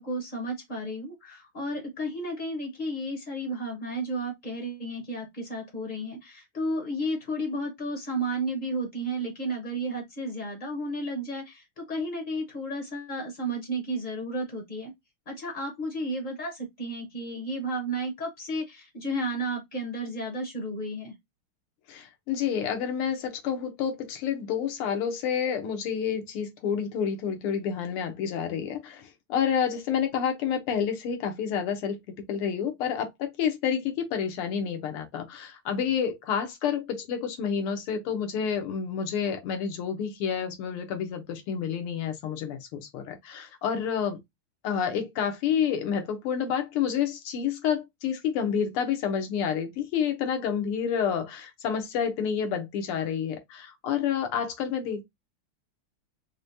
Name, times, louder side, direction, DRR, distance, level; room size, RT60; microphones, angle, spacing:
voice 1, 0.0-14.9 15.3-21.1, right 1 dB, 40° left, 0.6 m, -32 dB
voice 2, 21.9-44.2 44.6-55.0, left 7 dB, 85° left, 1.8 m, -29 dB
4.8 x 2.2 x 2.6 m
omnidirectional pair, 2.4 m